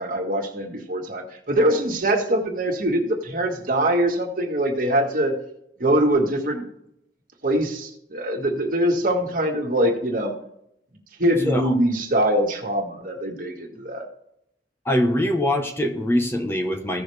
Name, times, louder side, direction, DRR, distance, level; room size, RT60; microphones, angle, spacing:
voice 1, 0.0-5.3 5.8-6.7 7.4-10.3 11.2-14.1, right 1 dB, 50° right, 1 dB, 1.8 m, -23 dB
voice 2, 14.8-17.0, left 1 dB, 15° left, 3 dB, 0.9 m, -23 dB
16.0 x 6.3 x 3.4 m, 0.75 s
head